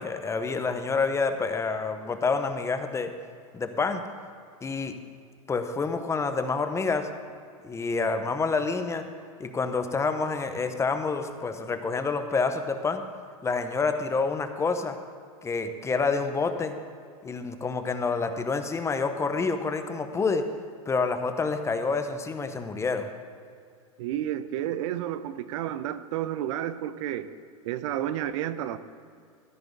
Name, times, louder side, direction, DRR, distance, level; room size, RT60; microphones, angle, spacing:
voice 1, 0.0-3.1 3.5-4.0 4.6-4.9 5.5-7.1 7.6-9.1 9.4-13.0 13.4-15.0 15.4-16.7 17.2-20.4 20.9-23.1, left 4 dB, 15° left, 8 dB, 0.8 m, -28 dB
voice 2, 24.0-27.3 27.6-28.8, right 11 dB, 60° right, 13 dB, 0.6 m, -31 dB
14.5 x 5.0 x 7.9 m, 2.3 s
hypercardioid pair, 110°, 19 cm